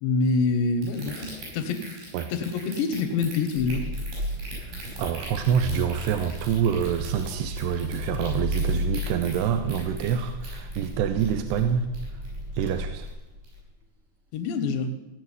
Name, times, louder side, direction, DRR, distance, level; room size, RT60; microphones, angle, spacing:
voice 1, 0.0-1.9 2.3-3.8 14.3-15.0, left 4 dB, 90° left, 7 dB, 3.5 m, -26 dB
sound 1, 0.8-12.4 12.7-13.1 13.4-13.6, right 2 dB, 70° right, 7.7 m, -42 dB
Car / Engine starting, 3.5-13.6, equal, 45° right, 1.3 m, -34 dB
voice 2, 4.6-11.9 12.5-13.1, right 8 dB, 85° right, 8 dB, 2.8 m, -26 dB
16.5 x 6.9 x 9.5 m, 1.0 s
omnidirectional pair, 4.9 m